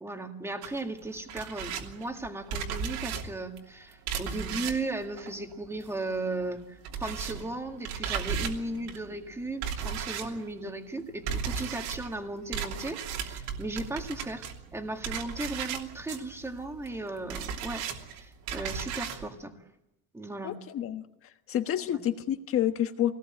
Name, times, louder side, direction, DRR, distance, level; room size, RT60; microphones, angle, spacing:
voice 1, 0.0-17.8 18.1-19.5 20.1-20.6, right 2 dB, 5° right, 4 dB, 1.9 m, -36 dB
sound 1, 0.6-6.1 6.4-19.3, right 7 dB, 60° right, 3.0 m, -36 dB
voice 2, 20.4-21.0 21.5-23.1, left 11 dB, 35° left, 8 dB, 1.3 m, -28 dB
24.5 x 18.5 x 8.9 m, 0.91 s
cardioid pair, 165°, 40 cm